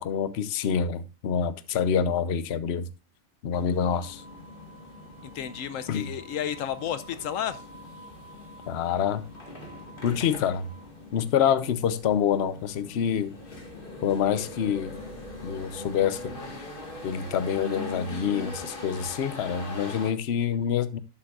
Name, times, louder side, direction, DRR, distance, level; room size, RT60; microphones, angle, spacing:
voice 1, 0.0-2.9 3.4-4.2 5.9-6.1 8.7-9.2 10.0-10.7 11.1-13.3 14.0-15.0 15.4-16.4 17.0-21.0, left 8 dB, 55° left, 0.9 m, -26 dB
sound 1, 3.5-20.1, left 2 dB, 40° left, 2.3 m, -41 dB
voice 2, 5.2-7.6, left 9 dB, 80° left, 1.0 m, -32 dB
11.5 x 8.7 x 2.5 m
omnidirectional pair, 1.4 m